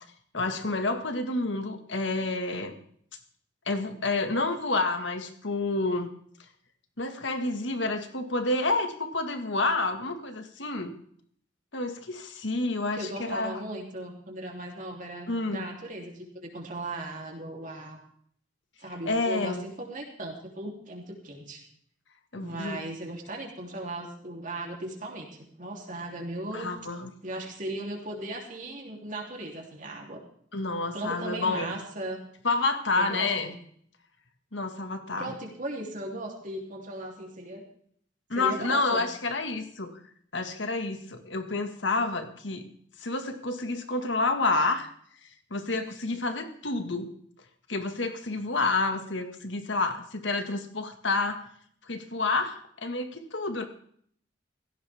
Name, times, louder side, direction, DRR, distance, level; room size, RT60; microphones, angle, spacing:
voice 1, 0.3-2.8 3.7-6.1 7.0-11.0 11.7-13.5 15.3-15.7 19.1-19.6 22.3-22.8 26.5-27.1 30.5-31.8 32.4-33.5 34.5-35.4 38.3-40.0 40.3-42.7 43.0-44.9 45.2-47.1 47.7-51.4 51.8-53.7, left 3 dB, 70° left, 7 dB, 1.9 m, -29 dB
voice 2, 12.8-18.0 18.8-21.6 22.3-26.7 27.2-30.2 30.9-32.2 32.9-33.5 35.2-37.6 38.3-39.1, right 1 dB, 40° right, 0 dB, 3.4 m, -37 dB
16.5 x 15.5 x 3.6 m, 0.62 s
head